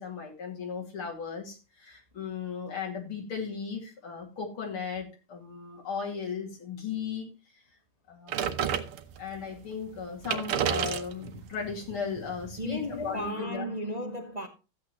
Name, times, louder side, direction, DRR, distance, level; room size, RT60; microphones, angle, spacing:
voice 1, 0.0-7.6 8.1-8.6 9.2-13.7, left 6 dB, 75° left, 3.3 m, -36 dB
sound 1, 8.3-9.4 9.9-10.0 10.2-13.2, right 9 dB, 80° right, 1.8 m, -32 dB
voice 2, 12.6-14.5, equal, 55° right, 0.4 m, -34 dB
14.0 x 8.5 x 3.0 m
omnidirectional pair, 2.4 m